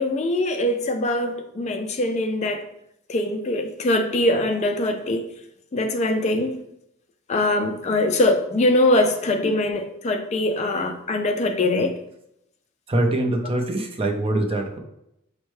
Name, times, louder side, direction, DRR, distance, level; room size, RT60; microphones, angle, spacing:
voice 1, 0.0-2.6 3.1-5.2 5.7-6.5 7.3-11.9, left 1 dB, 30° left, 7 dB, 0.3 m, -22 dB
voice 2, 12.9-14.8, right 1 dB, 25° right, 4 dB, 0.5 m, -23 dB
5.3 x 2.1 x 3.1 m, 0.79 s
head